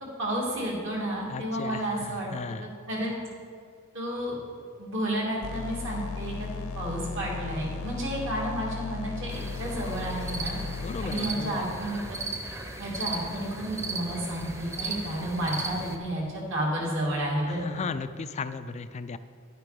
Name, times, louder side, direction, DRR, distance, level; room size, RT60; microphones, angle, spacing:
voice 1, 0.2-2.3 2.6-3.1 3.9-4.4 4.8-6.5 6.7-10.6 11.0-12.2 12.8-17.8, right 1 dB, 60° right, -3 dB, 2.8 m, -31 dB
voice 2, 1.3-2.7 10.8-11.7 17.5-19.2, left 4 dB, 30° left, 11 dB, 0.3 m, -36 dB
sound 1, 5.4-11.1, left 4 dB, 75° left, 0.8 m, -36 dB
sound 2, 9.3-16.0, right 2 dB, 15° right, 0.9 m, -37 dB
10.5 x 9.1 x 5.2 m, 2.2 s
head